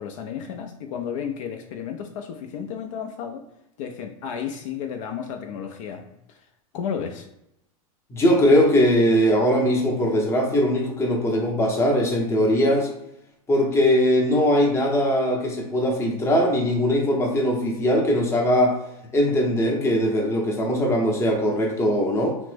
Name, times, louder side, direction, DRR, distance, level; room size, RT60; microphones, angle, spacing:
voice 1, 0.0-3.4 3.8-6.4 6.7-7.3, left 7 dB, 60° left, 4 dB, 0.4 m, -33 dB
voice 2, 8.1-12.9 13.5-18.7 19.1-22.4, equal, 15° left, 0 dB, 0.7 m, -20 dB
3.2 x 2.0 x 3.2 m, 0.82 s
hypercardioid pair, 125°, 19 cm